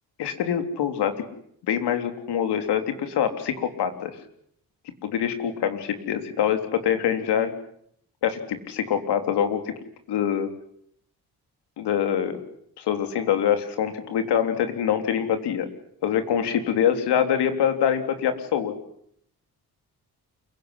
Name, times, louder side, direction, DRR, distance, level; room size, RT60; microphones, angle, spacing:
voice 1, 0.2-1.2 1.7-4.2 5.0-7.5 8.2-9.7 10.1-10.5 11.8-12.4 12.8-15.7 16.0-18.8, left 9 dB, 90° left, 8 dB, 3.6 m, -24 dB
28.5 x 17.5 x 9.8 m, 0.70 s
supercardioid pair, 55°, 39 cm